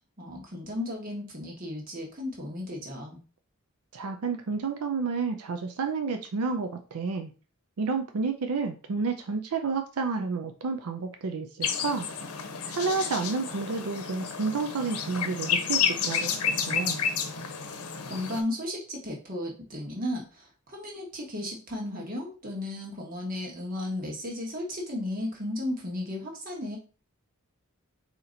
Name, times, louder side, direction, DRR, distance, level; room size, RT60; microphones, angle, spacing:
voice 1, 0.2-3.2 18.0-26.8, left 1 dB, 40° right, -1 dB, 1.4 m, -34 dB
voice 2, 3.9-7.3 7.8-12.1 12.7-17.0, right 4 dB, 85° right, 6 dB, 0.5 m, -30 dB
sound 1, 11.6-18.4, left 7 dB, 85° left, 0.7 m, -30 dB
4.2 x 2.9 x 3.9 m, 0.35 s
head